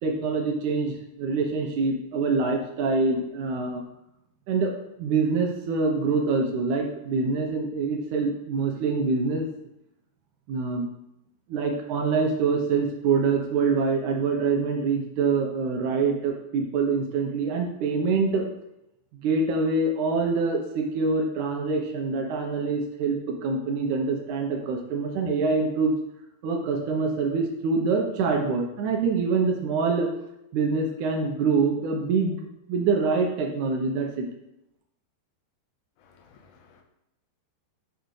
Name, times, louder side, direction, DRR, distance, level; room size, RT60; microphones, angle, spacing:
voice 1, 0.0-3.8 4.5-4.7 5.0-9.5 10.5-10.9 11.5-18.5 19.2-25.9 26.4-30.1 30.5-34.3, right 4 dB, 90° right, 1 dB, 1.7 m, -25 dB
voice 2, 36.0-36.8, left 5 dB, 80° left, 3 dB, 1.8 m, -57 dB
9.2 x 6.4 x 3.2 m, 0.83 s
omnidirectional pair, 4.8 m